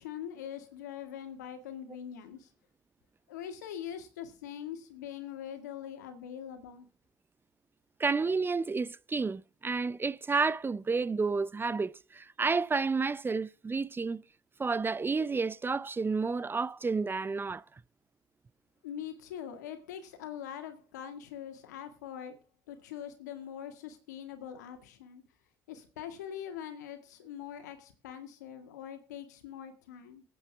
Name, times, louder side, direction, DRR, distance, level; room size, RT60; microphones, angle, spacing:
voice 1, 0.0-2.5 3.3-6.9 18.8-22.4 22.7-25.2 25.7-30.2, left 9 dB, 90° left, 1.9 m, -43 dB
voice 2, 8.0-14.2 14.6-17.6, right 4 dB, 25° right, 0.5 m, -30 dB
23.5 x 8.6 x 3.5 m
hypercardioid pair, 60°, 9 cm